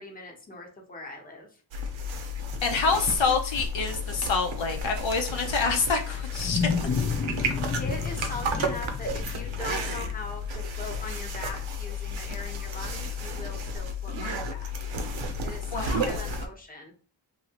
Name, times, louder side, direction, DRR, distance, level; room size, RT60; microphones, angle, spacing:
voice 1, 0.0-1.5 7.8-14.9 15.4-17.0, left 2 dB, 20° left, 1 dB, 0.9 m, -40 dB
sound 1, 1.7-16.5, left 1 dB, 75° right, 0.7 m, -32 dB
voice 2, 2.6-6.6 15.7-16.3, left 4 dB, 75° left, 3 dB, 0.7 m, -27 dB
Wild animals, 6.0-10.5, left 6 dB, 35° left, 0.4 m, -31 dB
3.0 x 2.8 x 2.9 m, 0.41 s
wide cardioid pair, 85°, 46 cm